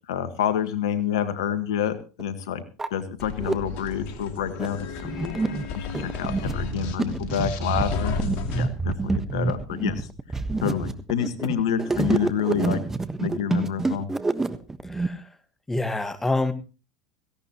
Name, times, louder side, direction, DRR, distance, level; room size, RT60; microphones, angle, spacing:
voice 1, 0.1-2.6 2.9-10.1 10.6-12.8 13.2-14.1, left 9 dB, 75° left, 11 dB, 1.6 m, -28 dB
sound 1, 1.4-1.5 2.2-2.3 2.6-3.6 4.2-15.1, right 3 dB, 15° right, 1.3 m, -27 dB
Explosion, 3.2-8.4, left 2 dB, 40° left, 5.4 m, -42 dB
sound 2, 3.7-8.7, left 4 dB, 55° left, 2.5 m, -34 dB
voice 2, 14.8-15.2 15.7-16.5, left 2 dB, 10° left, 11 dB, 1.6 m, -26 dB
17.5 x 16.5 x 3.0 m, 0.33 s
hypercardioid pair, 85°, 3 cm